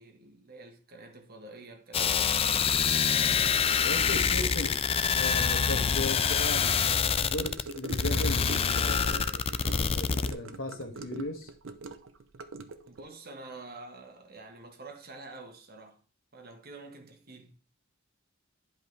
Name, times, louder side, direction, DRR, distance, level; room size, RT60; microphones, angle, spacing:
voice 1, 0.0-2.3 12.8-16.0 16.3-17.5, right 2 dB, 50° right, 1.5 m, -47 dB
sound 1, 1.9-10.3, left 6 dB, 30° left, 0.4 m, -26 dB
voice 2, 3.8-4.8 5.1-6.8 7.1-11.5, left 1 dB, 85° left, 1.7 m, -37 dB
Gurgling / Car passing by / Sink (filling or washing), 7.4-13.1, right 3 dB, 70° right, 0.7 m, -43 dB
11.0 x 5.1 x 3.3 m
head